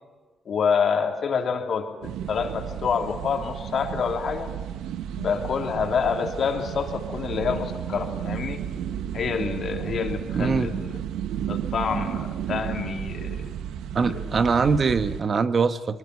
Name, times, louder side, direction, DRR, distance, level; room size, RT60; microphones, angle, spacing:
voice 1, 0.4-4.5 5.1-8.6 9.1-11.0 11.5-13.5 14.2-14.4, left 6 dB, 55° left, 3 dB, 3.3 m, -27 dB
sound 1, 2.0-15.2, right 10 dB, 85° right, 1.0 m, -33 dB
voice 2, 10.3-10.7 13.9-16.0, right 5 dB, 40° right, 11 dB, 1.1 m, -23 dB
22.5 x 20.5 x 9.6 m, 1.3 s
cardioid pair, 90°, 0 cm